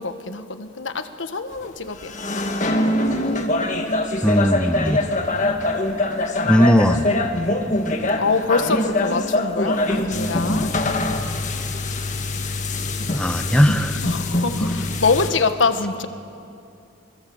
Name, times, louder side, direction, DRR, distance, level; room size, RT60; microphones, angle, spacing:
voice 1, 0.0-2.1 8.2-10.7 14.0-16.1, left 4 dB, 85° left, 1.4 m, -24 dB
sound 1, 1.6-1.7 2.0-15.3, left 2 dB, 40° left, 1.8 m, -23 dB
voice 2, 4.2-5.0 6.4-7.1 13.1-14.0, equal, 5° left, 0.8 m, -18 dB
27.0 x 21.5 x 8.0 m
head